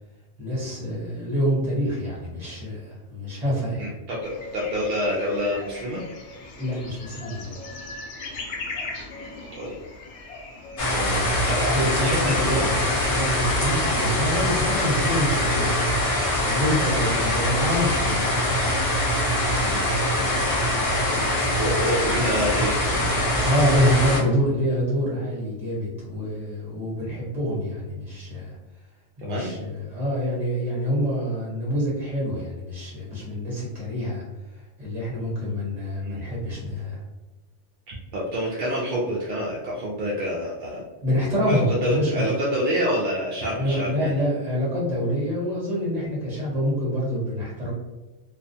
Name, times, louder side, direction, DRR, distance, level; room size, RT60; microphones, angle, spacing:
voice 1, 0.4-3.9 6.6-7.7 11.7-15.7 16.4-18.4 23.4-28.5 29.2-34.2 34.8-37.0 41.0-42.3 43.5-47.7, equal, 35° right, -5 dB, 1.2 m, -26 dB
voice 2, 3.8-6.0 9.5-9.7 10.9-12.6 19.6-19.9 21.6-23.1 29.2-29.5 36.0-36.2 37.9-40.8 41.5-44.1, equal, 60° right, -5 dB, 0.5 m, -27 dB
sound 1, 4.2-11.8, left 3 dB, 75° left, 0.9 m, -39 dB
sound 2, 10.8-24.2, left 1 dB, 50° left, 0.4 m, -23 dB
2.4 x 2.3 x 2.6 m, 1.1 s
omnidirectional pair, 1.2 m